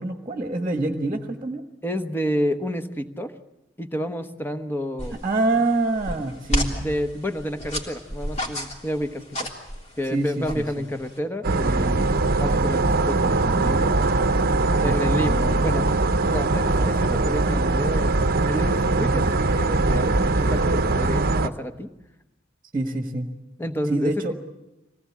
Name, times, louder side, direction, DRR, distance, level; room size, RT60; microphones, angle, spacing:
voice 1, 0.0-1.6 5.2-6.7 10.1-10.6 14.8-15.0 22.7-23.3 23.9-24.3, right 2 dB, 20° right, 5 dB, 1.5 m, -25 dB
voice 2, 1.8-3.3 3.8-5.2 6.8-9.5 10.0-14.1 14.8-15.9 16.3-21.9 23.6-24.2, equal, 10° left, 8 dB, 1.1 m, -30 dB
sound 1, 5.0-11.2, equal, 35° left, 3.3 m, -32 dB
sound 2, 11.4-21.5, right 3 dB, 50° right, 0.8 m, -21 dB
24.5 x 18.5 x 8.6 m, 0.96 s
head